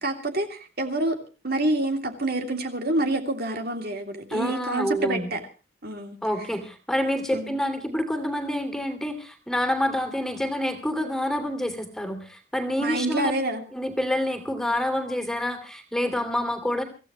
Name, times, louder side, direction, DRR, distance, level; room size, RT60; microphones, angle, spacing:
voice 1, 0.0-1.2 1.4-5.4 5.8-6.2 7.3-7.6 12.8-13.6, right 2 dB, 50° right, 2.9 m, -27 dB
voice 2, 4.3-5.3 6.2-13.3 13.7-16.8, left 1 dB, ahead, 2.9 m, -27 dB
25.0 x 16.0 x 3.1 m
head